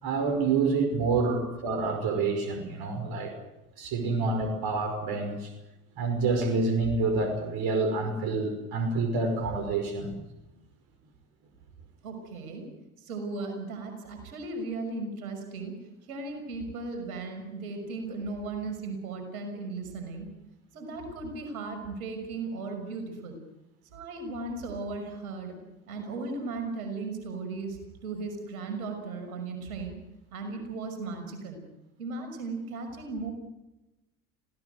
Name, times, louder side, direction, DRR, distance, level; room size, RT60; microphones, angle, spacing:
voice 1, 0.0-3.3 3.8-5.5 6.0-10.1, right 3 dB, 55° right, 5 dB, 5.3 m, -27 dB
voice 2, 12.0-12.7 13.0-15.7 16.1-20.3 20.7-23.4 23.9-25.6 25.9-29.9 30.3-31.6 32.0-33.3, right 3 dB, 80° right, 4 dB, 6.2 m, -36 dB
26.5 x 17.5 x 8.1 m, 0.98 s
hypercardioid pair, 70°, 43 cm